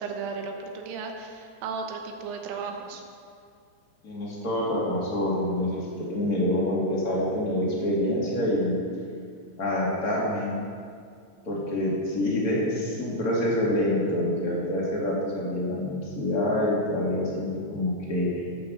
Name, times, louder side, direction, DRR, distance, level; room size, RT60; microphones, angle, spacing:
voice 1, 0.0-3.0, right 5 dB, 90° right, 3 dB, 3.7 m, -35 dB
voice 2, 4.0-8.7 9.6-10.6 11.5-18.4, left 1 dB, 30° left, -5 dB, 1.7 m, -26 dB
15.0 x 5.8 x 7.2 m, 2.3 s
omnidirectional pair, 5.7 m